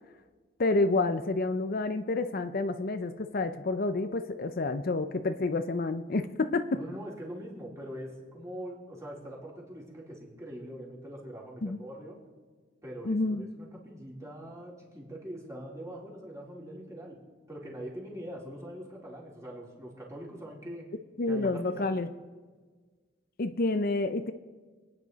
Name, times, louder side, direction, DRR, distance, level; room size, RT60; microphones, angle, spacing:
voice 1, 0.6-6.8 11.6-11.8 13.1-13.4 21.2-22.1 23.4-24.3, left 3 dB, 50° left, 9 dB, 0.6 m, -29 dB
voice 2, 6.7-12.2 12.8-17.2 17.5-20.9 21.2-21.9, equal, 15° right, -4 dB, 3.7 m, -43 dB
27.5 x 9.9 x 4.1 m, 1.4 s
head